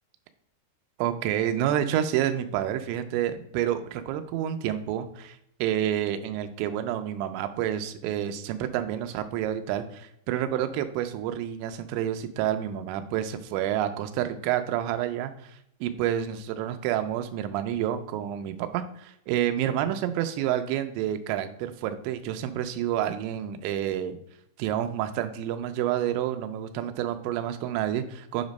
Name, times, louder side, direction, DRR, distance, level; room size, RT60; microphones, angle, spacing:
voice 1, 1.0-24.2 24.6-28.5, right 11 dB, 80° right, 8 dB, 2.7 m, -29 dB
8.0 x 3.1 x 5.2 m, 0.73 s
omnidirectional pair, 5.5 m